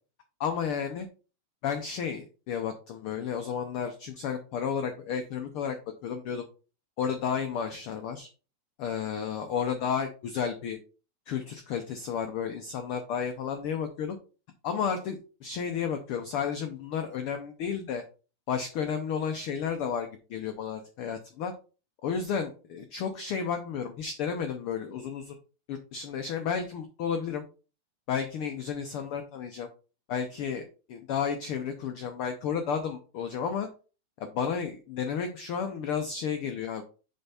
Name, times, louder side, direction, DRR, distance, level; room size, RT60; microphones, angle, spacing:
voice 1, 0.4-1.1 1.6-5.8 6.0-6.5 7.0-8.3 8.8-10.8 11.3-14.2 14.6-18.0 18.5-21.5 22.0-25.4 25.7-27.5 28.1-29.7 30.1-33.7 34.2-36.8, left 7 dB, 80° left, 7 dB, 1.2 m, -32 dB
6.9 x 4.4 x 4.2 m, 0.35 s
omnidirectional pair, 3.4 m